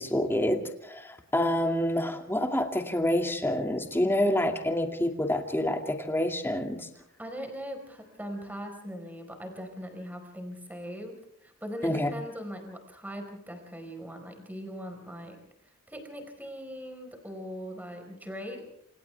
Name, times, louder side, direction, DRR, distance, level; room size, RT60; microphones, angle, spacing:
voice 1, 0.0-6.9 11.8-12.1, left 1 dB, 10° left, 4 dB, 2.4 m, -27 dB
voice 2, 6.9-11.2 11.4-15.4 15.9-18.7, equal, 10° right, 5 dB, 4.7 m, -40 dB
28.0 x 27.5 x 3.5 m, 0.75 s
head